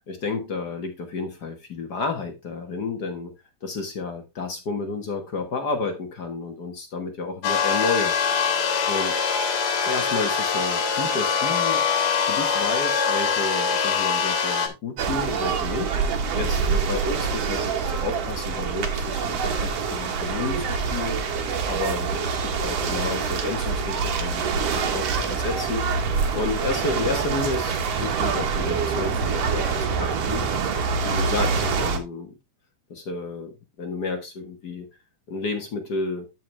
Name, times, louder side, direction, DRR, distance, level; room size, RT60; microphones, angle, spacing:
voice 1, 0.1-3.3 3.6-8.1 8.9-9.2 9.8-11.8 12.3-21.2 21.7-25.8 26.3-30.5 31.0-32.4 32.9-34.9 35.3-36.3, left 3 dB, 50° left, 1.2 m, -31 dB
sound 1, 7.4-14.7, left 6 dB, 80° left, 3.2 m, -23 dB
sound 2, 15.0-32.0, right 5 dB, 55° right, 2.1 m, -25 dB
12.5 x 4.8 x 3.3 m
omnidirectional pair, 3.7 m